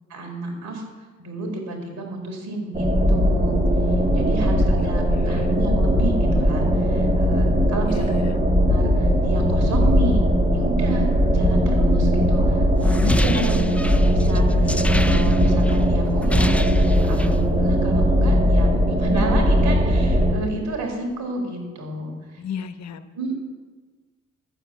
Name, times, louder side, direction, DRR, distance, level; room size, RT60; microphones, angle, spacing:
voice 1, 0.1-0.8 1.2-3.6 4.1-8.2 8.6-10.2 10.5-11.1 11.3-13.6 13.9-16.5 16.8-22.1 23.1-23.4, right 2 dB, 65° right, 1 dB, 4.0 m, -31 dB
sound 1, 2.7-20.3, equal, 25° right, 2.1 m, -19 dB
voice 2, 4.8-5.5 7.9-8.3 13.0-13.6 22.4-23.1, left 7 dB, 60° left, 11 dB, 1.0 m, -33 dB
sound 2, 12.8-15.8 16.1-17.4, left 1 dB, 5° left, 0.5 m, -26 dB
11.5 x 7.8 x 8.8 m, 1.4 s
cardioid pair, 90°, 30 cm